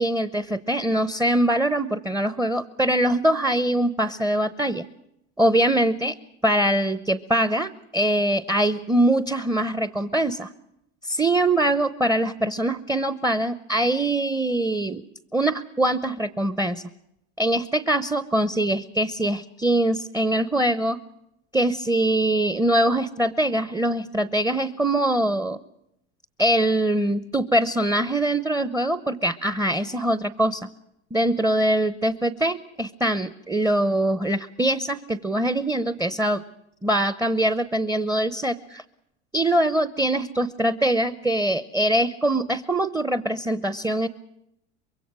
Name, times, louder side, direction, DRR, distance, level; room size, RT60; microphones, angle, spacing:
voice 1, 0.0-4.8 5.4-6.1 6.4-10.5 11.0-15.0 15.3-16.8 17.4-21.0 21.5-25.6 26.4-30.7 31.1-36.4 36.8-38.8 39.3-44.1, right 1 dB, 5° right, 14 dB, 0.8 m, -23 dB
24.5 x 22.5 x 6.1 m, 0.80 s
hypercardioid pair, 95°, 36 cm